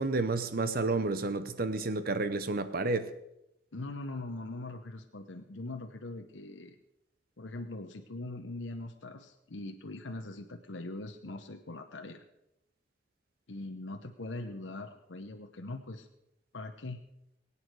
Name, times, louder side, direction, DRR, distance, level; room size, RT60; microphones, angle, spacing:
voice 1, 0.0-3.1, right 3 dB, 50° right, 11 dB, 0.8 m, -30 dB
voice 2, 3.7-6.8 7.4-12.2 13.5-16.1 16.5-17.0, left 2 dB, 80° left, 5 dB, 0.9 m, -41 dB
22.0 x 8.6 x 4.8 m, 0.86 s
head